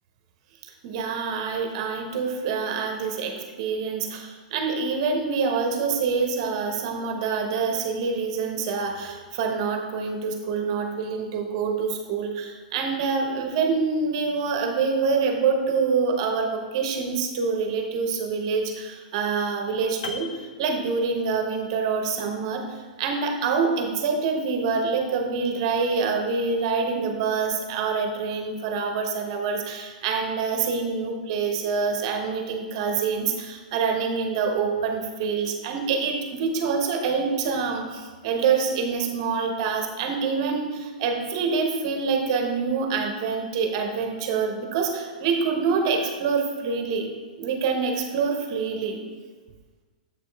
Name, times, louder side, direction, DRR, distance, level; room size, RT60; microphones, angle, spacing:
voice 1, 0.6-20.3 20.6-47.1 47.4-49.0, right 5 dB, 40° right, 4 dB, 0.8 m, -26 dB
Piano, 20.0-21.5 21.8-22.0, left 5 dB, 60° left, 0.5 m, -39 dB
7.4 x 5.2 x 3.4 m, 1.4 s
supercardioid pair, 170°, 5 cm